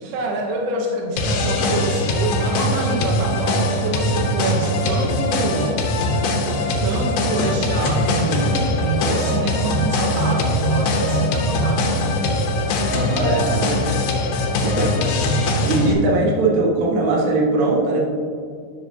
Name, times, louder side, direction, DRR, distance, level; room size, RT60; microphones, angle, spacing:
voice 1, 0.1-5.8 6.8-12.1, right 2 dB, 85° right, -1 dB, 2.9 m, -26 dB
sound 1, 1.2-15.9, left 1 dB, 75° left, 2.6 m, -21 dB
voice 2, 12.9-13.9 14.6-15.1 15.6-18.0, right 2 dB, 65° right, -4 dB, 2.9 m, -20 dB
11.0 x 7.4 x 2.7 m, 2.3 s
omnidirectional pair, 4.6 m